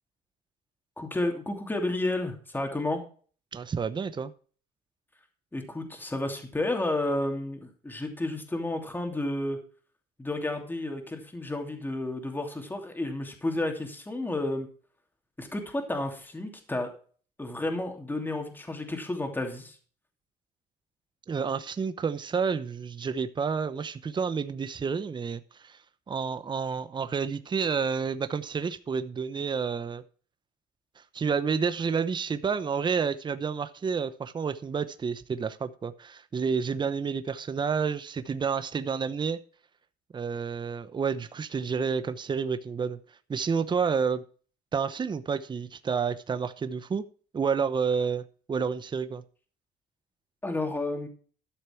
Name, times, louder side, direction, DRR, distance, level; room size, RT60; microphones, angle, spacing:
voice 1, 1.0-3.0 5.5-9.6 10.2-14.7 15.4-16.9 17.4-19.8 50.4-51.1, left 2 dB, 10° left, 2.7 m, -31 dB
voice 2, 3.5-4.3 21.3-25.8 26.1-30.0 31.0-39.4 40.1-43.0 43.3-44.2 44.7-47.0 47.3-49.2, right 6 dB, 25° right, 0.8 m, -30 dB
12.5 x 6.7 x 4.5 m
cardioid pair, 110°, 17 cm